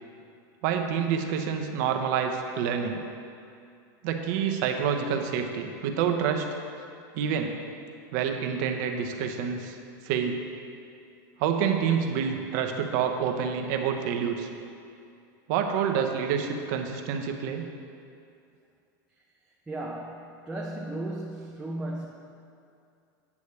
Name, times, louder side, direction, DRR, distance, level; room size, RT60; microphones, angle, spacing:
voice 1, 0.6-3.0 4.0-6.5 7.1-7.6 8.1-9.8 10.0-10.4 11.4-14.5 15.5-17.6, right 7 dB, 60° right, 4 dB, 0.8 m, -27 dB
voice 2, 19.7-22.1, right 1 dB, 10° right, -4 dB, 0.6 m, -35 dB
8.4 x 8.2 x 3.3 m, 2.4 s
supercardioid pair, 135°, 11 cm